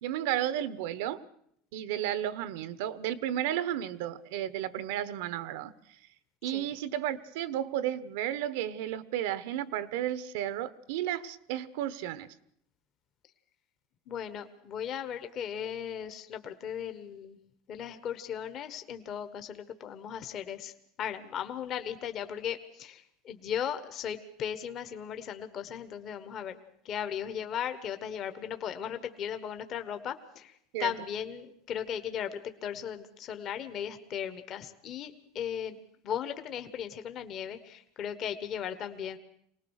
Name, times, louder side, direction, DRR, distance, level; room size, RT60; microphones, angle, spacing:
voice 1, 0.0-1.2 1.7-5.7 6.4-12.3 30.7-30.9, right 11 dB, 75° right, 15 dB, 1.0 m, -33 dB
voice 2, 14.1-17.4 17.7-20.7 21.0-26.6 26.8-35.8 36.0-39.2, left 8 dB, 40° left, 9 dB, 1.3 m, -37 dB
24.5 x 19.0 x 6.5 m, 0.71 s
supercardioid pair, 145°, 0 cm